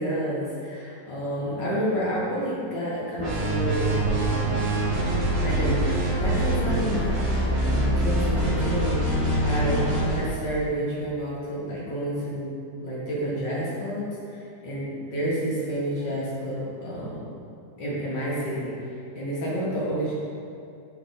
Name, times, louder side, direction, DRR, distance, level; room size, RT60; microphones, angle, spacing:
voice 1, 0.0-12.5 12.8-17.3 17.8-20.1, equal, 80° left, -7 dB, 2.5 m, -30 dB
sound 1, 3.2-10.2, right 1 dB, 45° right, 1.4 m, -24 dB
8.0 x 4.7 x 4.1 m, 2.6 s
omnidirectional pair, 1.9 m